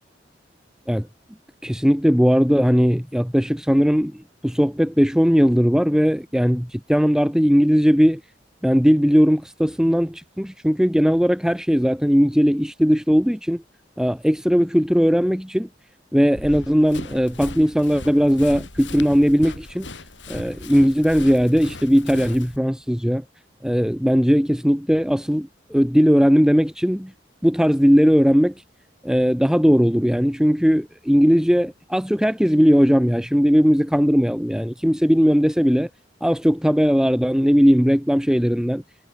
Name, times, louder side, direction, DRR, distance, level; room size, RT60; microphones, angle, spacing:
voice 1, 1.6-8.2 8.6-13.6 14.0-15.7 16.1-19.9 20.3-23.2 23.6-27.1 27.4-28.5 29.0-35.9 36.2-38.8, equal, 5° right, 2.6 m, -18 dB
Run, 16.4-22.6, left 2 dB, 90° left, 6.8 m, -37 dB
head